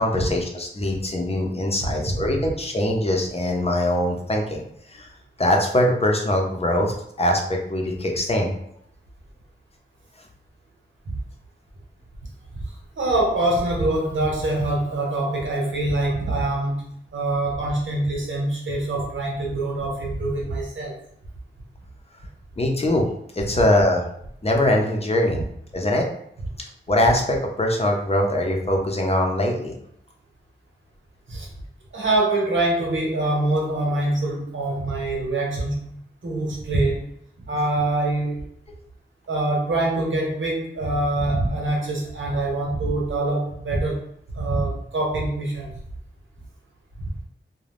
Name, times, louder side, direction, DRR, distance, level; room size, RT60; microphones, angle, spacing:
voice 1, 0.0-4.6 4.9-5.1 5.4-8.5 22.6-23.0 23.3-24.0 24.4-25.4 25.7-26.0 26.9-29.7, left 1 dB, 30° left, 1 dB, 0.6 m, -22 dB
voice 2, 13.0-16.8 17.1-20.9 23.5-23.6 31.3-31.5 31.9-36.0 36.2-37.1 37.5-38.5 39.3-44.0 44.3-45.7, right 2 dB, 85° right, -3 dB, 1.0 m, -24 dB
2.5 x 2.2 x 3.4 m, 0.71 s
wide cardioid pair, 60°, 20 cm